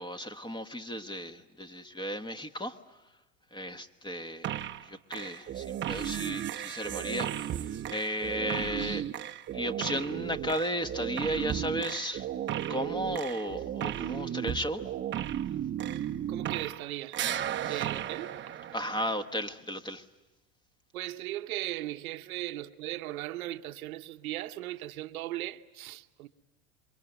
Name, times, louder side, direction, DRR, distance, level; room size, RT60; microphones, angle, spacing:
voice 1, 0.0-2.8 3.5-9.1 9.5-12.3 12.7-14.9 17.6-17.8 18.7-20.0, equal, 10° left, 1.4 m, -35 dB
sound 1, 4.4-4.9 5.1-16.9 17.1-19.3, right 11 dB, 25° right, 0.9 m, -35 dB
voice 2, 16.3-17.2 17.6-18.4 20.9-26.3, right 15 dB, 85° right, 1.1 m, -37 dB
27.5 x 23.5 x 8.1 m
hypercardioid pair, 105°, 42 cm